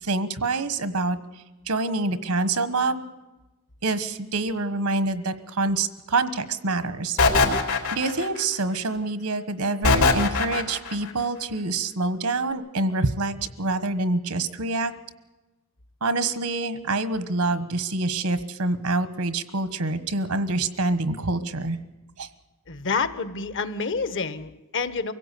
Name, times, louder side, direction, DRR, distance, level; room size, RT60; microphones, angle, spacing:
voice 1, 0.0-1.2 1.7-3.1 3.8-7.2 7.9-14.9 16.0-21.8 22.2-22.3, right 3 dB, 85° right, 12 dB, 1.4 m, -26 dB
sound 1, 7.2-8.4 9.8-10.9, left 3 dB, 80° left, 3.8 m, -20 dB
voice 2, 22.7-25.1, left 4 dB, 60° left, 13 dB, 1.2 m, -28 dB
24.0 x 16.5 x 8.4 m, 1.1 s
head